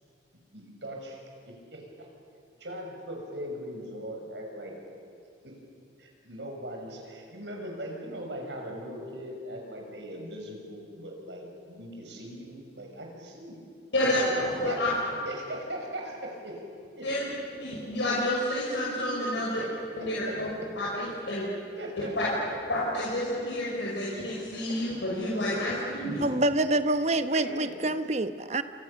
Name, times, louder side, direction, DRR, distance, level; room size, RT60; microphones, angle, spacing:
voice 1, 0.5-2.1 2.6-4.7 5.4-5.6 6.0-13.7 14.0-14.3 14.6-14.8 15.2-16.6 16.9-17.3 19.6-19.7 20.3-20.4 21.8-22.6 24.7-24.8 25.5-25.7 27.3-27.9, right 1 dB, 80° right, 1 dB, 6.5 m, -40 dB
voice 2, 13.9-15.0 17.0-17.2 17.6-19.6 20.0-20.5 20.8-21.5 22.2-22.3 22.7-26.3, left 1 dB, 90° left, -5 dB, 5.7 m, -29 dB
voice 3, 26.2-28.6, right 2 dB, 40° right, 10 dB, 1.0 m, -26 dB
29.5 x 27.5 x 7.0 m, 2.4 s
head